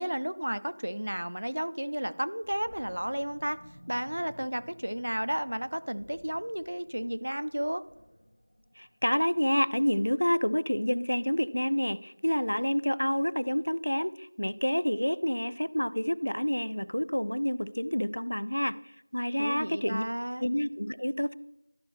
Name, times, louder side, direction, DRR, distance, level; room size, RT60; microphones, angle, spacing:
voice 1, 0.0-3.6 3.9-7.8 19.4-20.5, equal, 45° right, 13 dB, 0.4 m, -32 dB
Animal, 2.4-9.5, equal, 20° left, 0.8 m, -55 dB
voice 2, 8.8-18.8 19.1-20.0 20.4-21.3, equal, 60° left, 17 dB, 0.3 m, -28 dB
12.5 x 5.3 x 3.0 m, 0.90 s
figure-of-eight pair, 180°, 0 cm